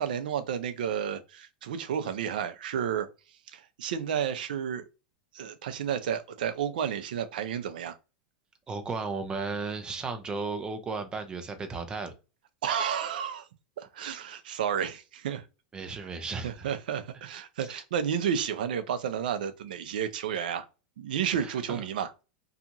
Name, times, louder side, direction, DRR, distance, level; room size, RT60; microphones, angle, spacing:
voice 1, 0.0-3.1 3.5-4.9 5.3-8.0 12.6-13.5 13.8-15.4 15.9-16.0 16.4-20.7 21.0-22.1, right 8 dB, 80° right, 0.5 m, -31 dB
voice 2, 8.7-12.1 15.7-16.7 17.6-17.8 21.4-21.8, right 4 dB, 20° right, 0.6 m, -35 dB
2.8 x 2.4 x 2.6 m
supercardioid pair, 130°, 5 cm